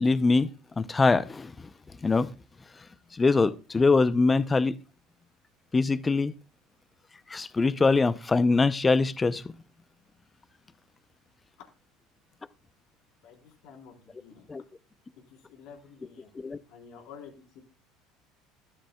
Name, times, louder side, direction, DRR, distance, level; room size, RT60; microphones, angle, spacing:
voice 1, 0.0-0.5 0.8-1.5 2.0-2.3 3.2-4.7 5.7-6.3 7.3-9.4 14.5-14.6 16.4-16.6, left 3 dB, 20° left, 0.7 m, -23 dB
voice 2, 13.2-14.5 15.3-16.3 16.7-17.6, left 6 dB, 70° left, 4.1 m, -50 dB
12.5 x 12.0 x 2.4 m
hypercardioid pair, 85°, 0 cm